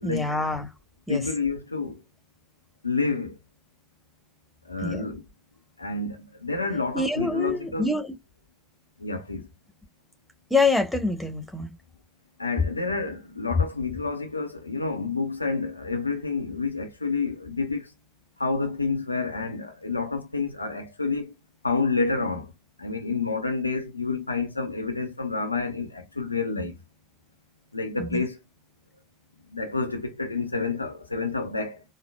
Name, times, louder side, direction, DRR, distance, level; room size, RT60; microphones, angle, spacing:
voice 1, 0.0-0.7 1.1-1.2 4.8-5.0 6.9-8.1 10.5-11.7 28.0-28.2, left 3 dB, 5° left, 1.3 m, -26 dB
voice 2, 1.1-2.0 2.8-3.4 4.7-5.2 5.8-7.9 9.0-9.5 12.4-17.9 18.4-21.3 21.6-22.5 22.8-26.8 27.7-28.4 29.5-31.8, left 4 dB, 85° left, 0.5 m, -29 dB
4.0 x 2.1 x 2.3 m
figure-of-eight pair, 55°, 0 cm